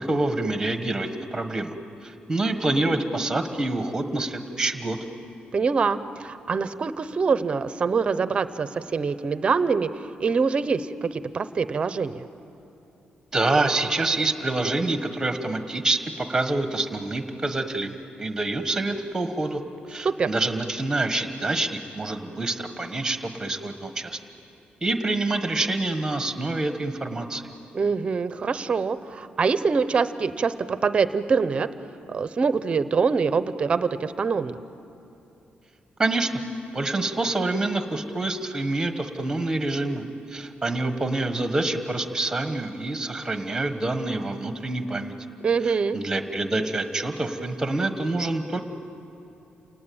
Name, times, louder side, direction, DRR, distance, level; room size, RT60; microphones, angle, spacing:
voice 1, 0.0-1.7 2.0-5.0 13.3-19.6 19.9-24.2 24.8-27.4 36.0-36.3 36.7-45.1 45.6-48.6, right 2 dB, 15° right, 7 dB, 1.4 m, -26 dB
voice 2, 5.5-9.9 10.2-12.2 20.0-20.3 27.7-31.7 32.1-34.6 45.4-46.0, right 5 dB, 35° right, 13 dB, 0.7 m, -24 dB
29.0 x 19.0 x 8.7 m, 2.8 s
wide cardioid pair, 175°, 3 cm